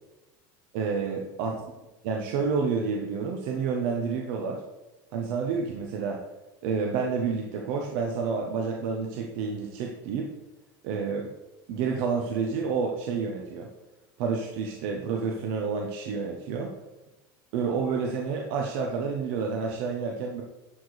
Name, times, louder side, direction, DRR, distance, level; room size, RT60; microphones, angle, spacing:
voice 1, 0.7-1.6 2.0-4.6 5.1-6.2 6.6-10.3 10.8-11.3 11.7-13.7 14.2-16.7 17.5-20.4, right 5 dB, 65° right, 1 dB, 1.1 m, -29 dB
11.0 x 5.0 x 4.2 m, 1.1 s
supercardioid pair, 130°, 11 cm